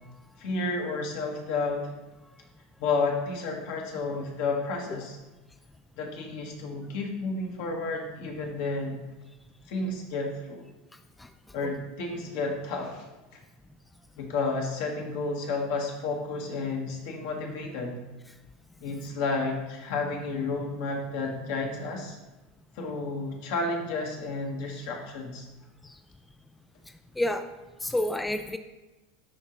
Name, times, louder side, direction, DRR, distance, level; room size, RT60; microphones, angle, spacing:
voice 1, 0.4-1.9 2.8-5.2 6.0-9.0 9.7-10.6 11.5-13.1 14.2-18.0 18.8-22.2 22.7-25.4, left 3 dB, 65° left, 0 dB, 1.4 m, -31 dB
voice 2, 27.2-27.5 27.8-28.6, left 1 dB, 10° left, 8 dB, 0.4 m, -28 dB
11.0 x 3.7 x 3.0 m, 1.1 s
hypercardioid pair, 90°, 0 cm